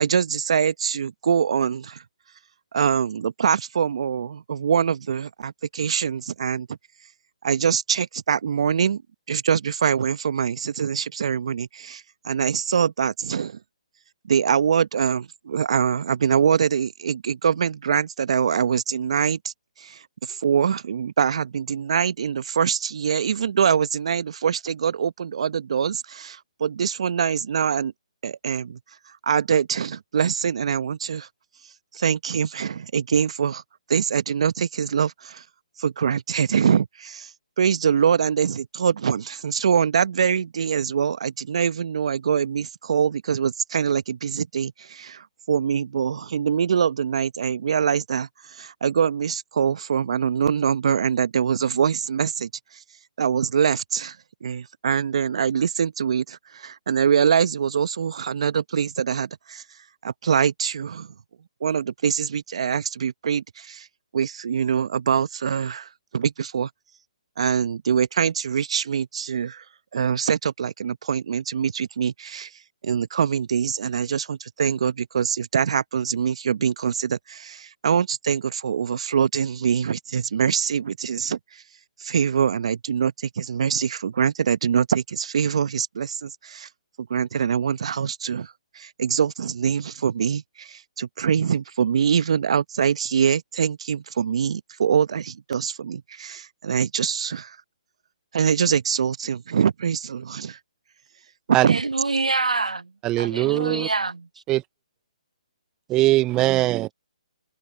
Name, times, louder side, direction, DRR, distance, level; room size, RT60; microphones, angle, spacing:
voice 1, 0.0-2.0 2.7-6.7 7.4-9.0 9.3-13.6 14.3-19.5 19.8-27.9 28.2-28.8 29.3-31.3 31.9-33.6 33.9-35.4 35.8-37.3 37.6-52.5 53.2-54.2 54.4-59.6 60.0-61.1 61.6-63.9 64.1-66.7 67.4-69.6 69.9-72.5 72.8-81.4 82.0-86.7 87.0-97.6 98.3-100.6 101.6-101.8, right 7 dB, 60° right, 1.1 m, -24 dB
voice 2, 101.7-102.9 103.2-104.3, right 3 dB, 85° right, 1.2 m, -26 dB
voice 3, 103.0-103.9 104.5-104.6 105.9-106.9, right 17 dB, 20° right, 0.3 m, -21 dB
open air
figure-of-eight pair, 140°, 4 cm